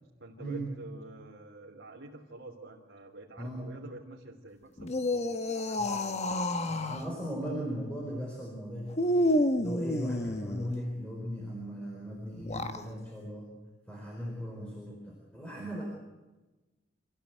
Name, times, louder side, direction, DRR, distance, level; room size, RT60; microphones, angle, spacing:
voice 1, 0.2-5.8 15.5-15.7, right 2 dB, 90° right, -6 dB, 3.0 m, -48 dB
voice 2, 3.4-3.7 5.8-6.0 6.7-9.0 9.6-13.5 13.9-15.8, equal, 5° left, -3 dB, 4.6 m, -38 dB
sound 1, 4.8-7.1 8.9-10.7 12.3-12.9, left 1 dB, 35° left, 1.2 m, -29 dB
26.0 x 16.0 x 8.2 m, 1.1 s
head